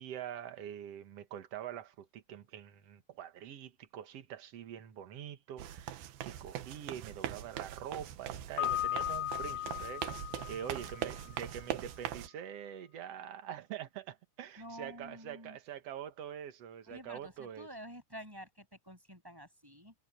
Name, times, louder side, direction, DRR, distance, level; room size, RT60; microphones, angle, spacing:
voice 1, 0.0-17.7, right 9 dB, 55° right, 1.9 m, -45 dB
sound 1, 5.6-12.3, right 11 dB, 75° right, 3.0 m, -41 dB
Piano, 8.6-11.5, left 14 dB, 90° left, 3.6 m, -37 dB
voice 2, 14.6-15.6 16.9-19.9, equal, 5° right, 7.4 m, -49 dB
omnidirectional pair, 4.4 m